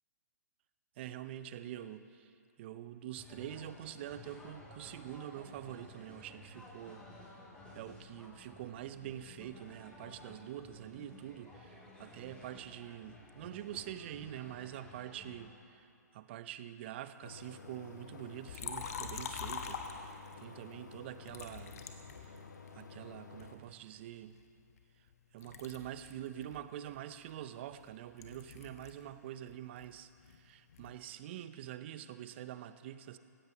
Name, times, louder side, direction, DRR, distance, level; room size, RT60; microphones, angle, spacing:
voice 1, 1.0-2.3 2.6-7.1 7.7-21.8 22.2-22.4 22.7-24.4 25.3-33.2, right 11 dB, 40° right, 12 dB, 0.6 m, -46 dB
sound 1, 3.2-15.5, left 1 dB, 10° left, 2.8 m, -54 dB
sound 2, 17.2-23.6, left 4 dB, 80° left, 1.2 m, -52 dB
Liquid, 18.5-20.4 21.3-22.8 23.4-25.1 25.4-29.1 29.4-31.0, left 6 dB, 60° left, 1.3 m, -45 dB
16.5 x 16.0 x 3.0 m, 2.4 s
figure-of-eight pair, 130°, 9 cm